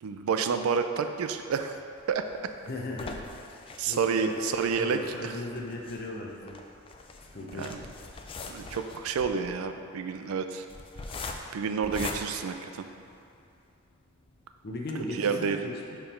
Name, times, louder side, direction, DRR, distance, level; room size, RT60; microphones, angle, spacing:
voice 1, 0.0-1.7 2.1-2.2 3.8-5.3 7.5-7.8 8.5-10.7 11.5-12.9 15.2-15.6, right 6 dB, 85° right, 7 dB, 0.4 m, -29 dB
sound 1, 2.0-13.4 13.9-14.0 14.3-14.4 14.8-14.9, left 3 dB, 25° left, 0.3 m, -42 dB
voice 2, 2.7-3.6 3.9-6.5 7.3-7.7 14.6-16.0, left 2 dB, 50° left, 0 dB, 0.8 m, -37 dB
5.3 x 4.6 x 4.3 m, 2.5 s
head